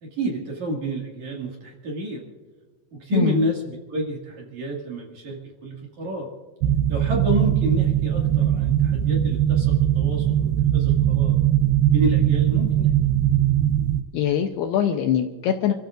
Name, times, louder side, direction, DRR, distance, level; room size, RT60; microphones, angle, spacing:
voice 1, 0.0-2.2 2.9-6.3 6.9-11.4 11.9-12.9, right 1 dB, 50° right, -1 dB, 2.9 m, -29 dB
sound 1, 6.6-14.0, right 11 dB, 85° right, 2.3 m, -20 dB
voice 2, 14.1-15.7, left 9 dB, 80° left, 5 dB, 2.4 m, -22 dB
29.5 x 14.5 x 2.5 m, 1.4 s
omnidirectional pair, 5.4 m